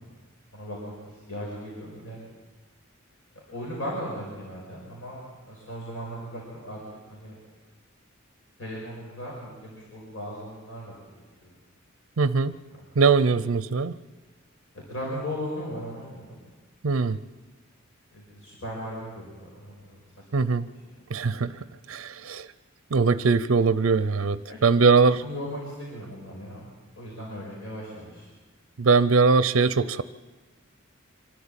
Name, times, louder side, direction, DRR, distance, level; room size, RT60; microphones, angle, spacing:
voice 1, 0.5-2.2 3.5-5.2 5.5-6.8 7.1-7.4 8.6-11.0 11.4-11.5 12.8-12.9 14.7-16.4 18.1-20.0 20.8-21.0 24.5-24.6 25.2-26.6 27.0-28.3, equal, 75° left, -4 dB, 5.5 m, -37 dB
voice 2, 12.2-12.5 13.0-14.0 16.8-17.2 20.3-20.7 21.1-22.5 22.9-25.2 28.8-30.0, right 4 dB, 70° right, 15 dB, 0.5 m, -21 dB
25.5 x 12.5 x 8.9 m, 1.3 s
head